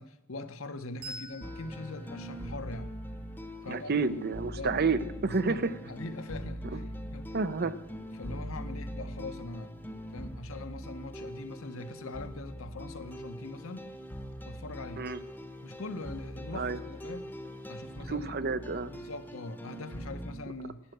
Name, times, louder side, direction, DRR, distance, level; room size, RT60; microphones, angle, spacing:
voice 1, 0.0-2.9 3.6-4.1 4.5-4.8 5.2-7.3 7.6-7.8 8.1-9.7 10.1-13.9 14.5-15.1 15.6-17.4 17.7-18.3 18.8-20.8, left 2 dB, 65° left, 10 dB, 0.9 m, -42 dB
Bell, 1.0-4.1, right 1 dB, 80° right, 5.8 m, -49 dB
sound 1, 1.4-20.3, equal, 10° left, 0.9 m, -42 dB
voice 2, 3.7-5.7 6.7-6.8 7.3-7.7 15.0-15.2 16.5-16.8 18.1-18.9, right 4 dB, 45° right, 14 dB, 0.7 m, -30 dB
12.5 x 8.8 x 7.9 m, 0.93 s
head